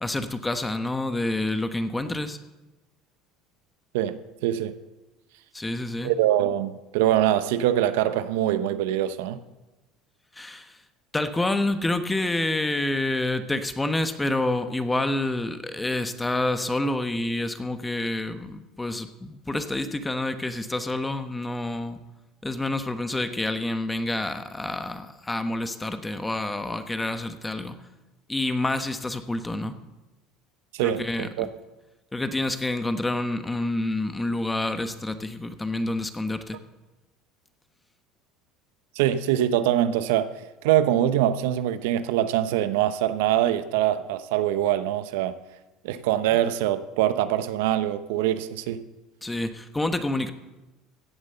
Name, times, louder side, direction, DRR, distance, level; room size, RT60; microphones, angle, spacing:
voice 1, 0.0-2.4 5.5-6.1 10.4-10.8 11.1-22.0 22.4-27.8 28.3-29.8 30.8-31.5 32.1-36.6 49.2-50.3, left 2 dB, 10° left, 1.1 m, -28 dB
voice 2, 3.9-4.7 6.0-9.4 30.7-31.5 39.0-40.3 40.6-45.4 45.8-48.8, right 12 dB, 85° right, 0.8 m, -24 dB
16.0 x 8.0 x 6.7 m
supercardioid pair, 115°, 0 cm